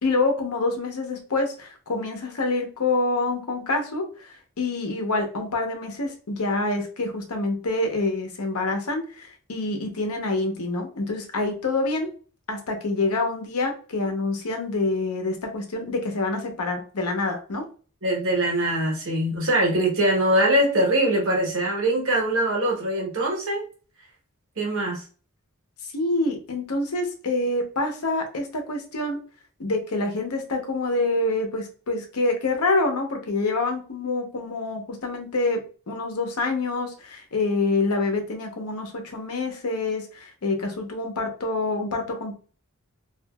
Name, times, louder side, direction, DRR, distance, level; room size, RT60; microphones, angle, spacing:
voice 1, 0.0-12.1 12.5-17.6 25.8-29.2 29.6-35.6 35.9-42.3, left 2 dB, 80° left, 4 dB, 0.7 m, -26 dB
voice 2, 18.0-23.6 24.6-25.0, right 1 dB, 65° right, -1 dB, 1.0 m, -22 dB
2.8 x 2.4 x 2.2 m, 0.38 s
head